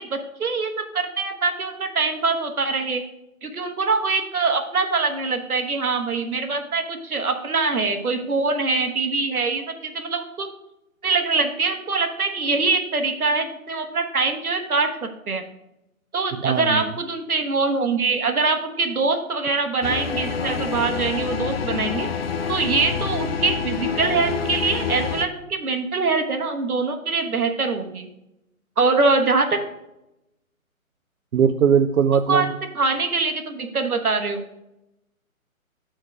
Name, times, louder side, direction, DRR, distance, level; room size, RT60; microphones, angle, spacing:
voice 1, 0.0-3.0 3.4-10.5 11.0-15.4 16.1-22.1 22.5-28.1 28.8-29.6 32.3-32.5 32.7-34.4, right 4 dB, 90° right, 5 dB, 1.4 m, -23 dB
voice 2, 16.3-16.9 31.3-32.5, right 7 dB, 75° right, 7 dB, 0.6 m, -20 dB
sound 1, 19.8-25.3, left 6 dB, 45° left, 0.6 m, -27 dB
6.9 x 4.4 x 6.1 m, 0.87 s
hypercardioid pair, 150°, 42 cm